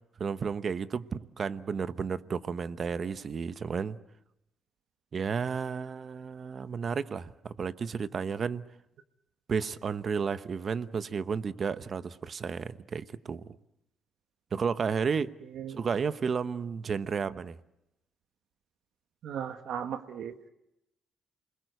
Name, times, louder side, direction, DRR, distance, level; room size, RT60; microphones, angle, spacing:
voice 1, 0.2-4.0 5.1-8.7 9.5-13.6 14.5-15.3 15.8-17.6, right 6 dB, 45° right, 1.0 m, -32 dB
voice 2, 19.2-20.3, right 8 dB, 75° right, 1.2 m, -36 dB
28.5 x 21.0 x 8.1 m
cardioid pair, 90°, 0 cm